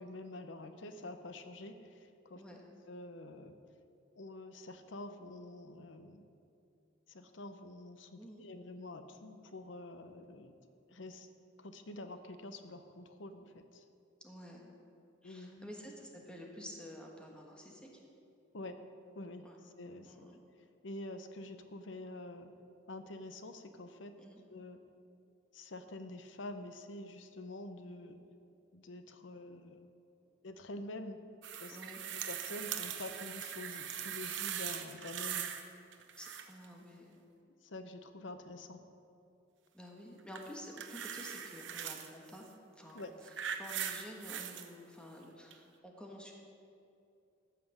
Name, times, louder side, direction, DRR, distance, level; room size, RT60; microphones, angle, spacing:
voice 1, 0.0-2.4 2.9-3.5 4.1-6.2 7.1-10.5 10.9-11.3 11.6-13.8 15.2-15.7 18.5-18.8 19.1-20.3 20.8-22.5 22.9-24.1 24.5-24.8 25.5-28.2 28.7-29.9 30.4-31.2 31.6-31.8 32.1-35.5 37.6-38.9 42.9-43.1, left 2 dB, 70° left, 9 dB, 0.8 m, -47 dB
voice 2, 14.2-14.7 15.2-18.0 19.4-19.5 20.1-20.4 24.2-24.4 31.7-32.0 36.2-37.2 39.7-42.5 42.8-43.0 43.6-46.3, equal, 5° left, 0 dB, 1.4 m, -50 dB
sound 1, 31.4-35.7 35.9-36.6 40.3-42.1 42.9-44.7 45.5-45.6, right 9 dB, 70° right, 0.8 m, -41 dB
14.0 x 6.0 x 7.2 m, 2.6 s
head